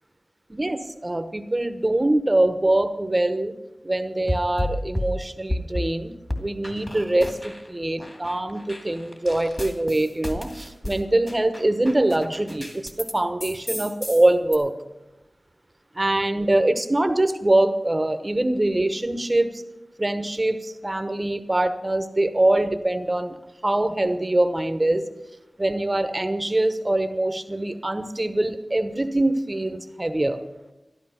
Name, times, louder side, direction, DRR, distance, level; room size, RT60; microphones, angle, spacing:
voice 1, 0.5-3.5 3.8-14.7 15.9-19.6 20.0-25.1 25.6-30.4, right 1 dB, 25° right, 9 dB, 1.0 m, -23 dB
sound 1, 4.3-5.9 6.3-7.7 8.0-13.1 13.4-14.6, left 1 dB, 20° left, 2.3 m, -32 dB
13.0 x 12.5 x 5.7 m, 1.0 s
wide cardioid pair, 65°, 0 cm